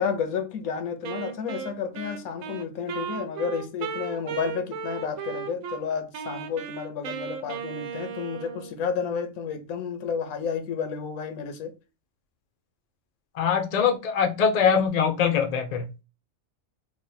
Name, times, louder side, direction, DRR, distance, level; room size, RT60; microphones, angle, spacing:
voice 1, 0.0-11.7, left 6 dB, 85° left, 1.1 m, -31 dB
Wind instrument woodwind instrument, 1.0-5.8 6.1-8.8, right 7 dB, 80° right, 1.0 m, -36 dB
voice 2, 13.4-16.0, left 7 dB, 55° left, 0.4 m, -23 dB
3.2 x 2.2 x 4.0 m
omnidirectional pair, 1.5 m